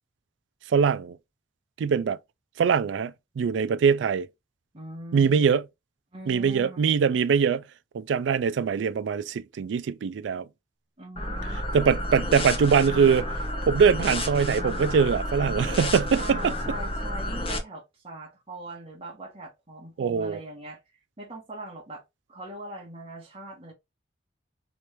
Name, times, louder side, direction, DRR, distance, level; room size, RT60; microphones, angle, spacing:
voice 1, 0.7-1.2 1.8-2.2 2.6-4.3 5.1-5.6 6.3-7.6 7.9-10.5 11.7-13.3 13.7-16.5 20.0-20.4, right 6 dB, 80° right, 0.3 m, -22 dB
voice 2, 4.7-5.5 6.1-6.9 11.0-11.7 16.2-20.8 21.2-22.0 22.3-23.7, right 1 dB, 30° right, 1.0 m, -41 dB
sound 1, 11.2-17.6, left 1 dB, 30° left, 0.8 m, -30 dB
3.1 x 3.0 x 3.0 m
head